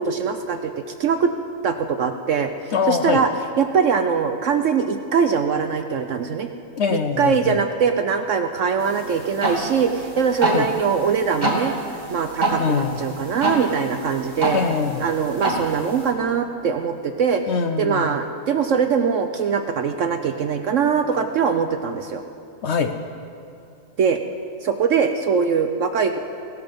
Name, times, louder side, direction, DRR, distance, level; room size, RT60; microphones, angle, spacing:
voice 1, 0.0-1.3 1.6-3.3 3.6-6.5 6.9-11.8 12.1-14.6 15.0-17.4 17.8-22.2 24.0-24.2 24.6-26.2, right 6 dB, 65° right, 7 dB, 0.8 m, -22 dB
voice 2, 2.7-3.2 6.7-7.6 10.4-10.7 12.6-13.0 14.5-15.1 17.5-18.2 22.6-22.9, left 5 dB, 65° left, 7 dB, 0.7 m, -23 dB
sound 1, 8.8-16.1, right 2 dB, 25° right, 2.0 m, -27 dB
17.5 x 12.5 x 5.2 m, 2.6 s
omnidirectional pair, 1.8 m